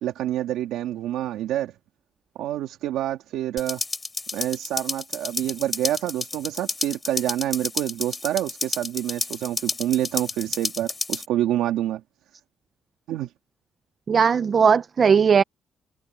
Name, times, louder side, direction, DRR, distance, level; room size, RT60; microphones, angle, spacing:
voice 1, 0.0-1.7 2.4-3.8 4.3-12.0 13.1-13.3, right 13 dB, 90° right, 2.2 m, -27 dB
sound 1, 3.6-11.3, left 3 dB, 20° left, 4.2 m, -31 dB
voice 2, 14.1-15.4, right 6 dB, 45° right, 0.7 m, -18 dB
cardioid pair, 90°, 0 cm